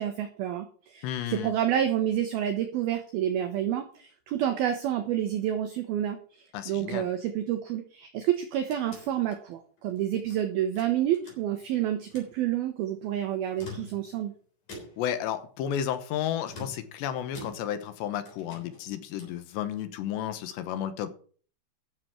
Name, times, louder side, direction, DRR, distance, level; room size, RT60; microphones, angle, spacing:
voice 1, 0.0-6.2 6.7-14.3, right 11 dB, 75° right, 6 dB, 2.4 m, -29 dB
voice 2, 1.0-1.5 6.5-7.1 15.0-21.2, left 10 dB, 75° left, 10 dB, 3.0 m, -32 dB
sound 1, 8.2-10.4 10.8-11.7 12.0-12.4 13.4-14.2 14.7-15.2 16.4-18.0 18.2-19.5, left 2 dB, 45° left, 4.7 m, -46 dB
12.5 x 6.8 x 5.8 m, 0.44 s
omnidirectional pair, 5.5 m